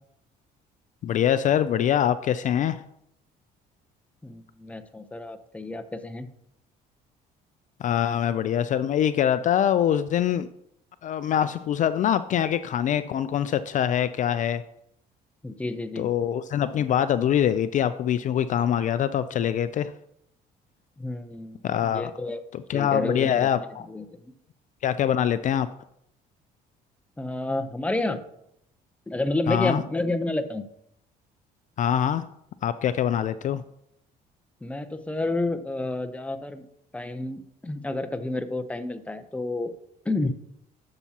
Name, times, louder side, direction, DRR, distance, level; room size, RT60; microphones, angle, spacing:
voice 1, 1.0-2.8 7.8-10.5 11.0-14.6 16.0-19.9 21.6-22.1 22.5-23.9 24.8-25.7 29.5-29.8 31.8-32.2 32.6-33.6, left 10 dB, 50° left, 13 dB, 0.4 m, -24 dB
voice 2, 4.2-6.3 15.4-16.1 21.0-21.6 21.9-22.4 22.7-24.1 27.2-28.2 29.1-30.7 34.6-36.6 36.9-39.7 40.1-40.3, left 2 dB, 10° left, 9 dB, 0.7 m, -30 dB
11.5 x 7.0 x 2.9 m, 0.77 s
cardioid pair, 110°, 17 cm